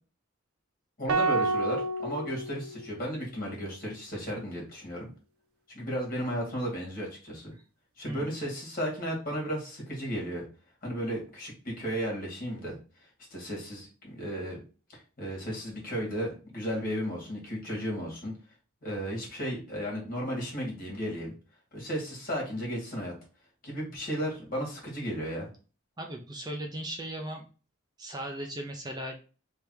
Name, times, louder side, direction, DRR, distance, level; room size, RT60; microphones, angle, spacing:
voice 1, 1.0-5.1 5.7-7.5 8.0-10.4 10.8-12.8 13.3-14.6 14.9-18.3 18.8-21.3 21.7-23.1 23.6-25.5, equal, 45° left, -2 dB, 2.0 m, -34 dB
sound 1, 1.1-3.4, right 3 dB, 85° right, 0.5 m, -30 dB
voice 2, 26.0-27.5 28.0-29.1, right 1 dB, 20° right, 2 dB, 0.5 m, -37 dB
3.4 x 3.3 x 4.6 m, 0.35 s
head